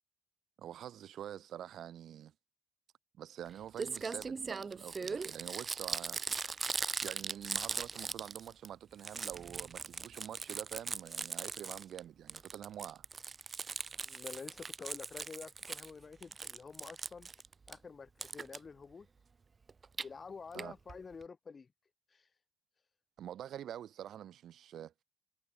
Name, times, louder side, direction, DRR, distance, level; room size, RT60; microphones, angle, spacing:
voice 1, 0.6-2.3 3.2-6.2 7.0-13.0 20.5-20.7 23.2-24.9, right 10 dB, 70° right, 6.6 m, -46 dB
Crumpling crinkling, 3.5-3.6 3.8-8.7 8.9-12.0 12.3-15.9 16.2-17.8 18.2-18.6 19.7-20.1 20.6-20.7 20.9-21.0 21.2-21.3, right 5 dB, 35° right, 0.9 m, -39 dB
voice 2, 14.0-17.3 17.7-19.1 20.0-21.7 22.1-22.2, left 5 dB, 35° left, 3.0 m, -48 dB
cardioid pair, 90°, 0 cm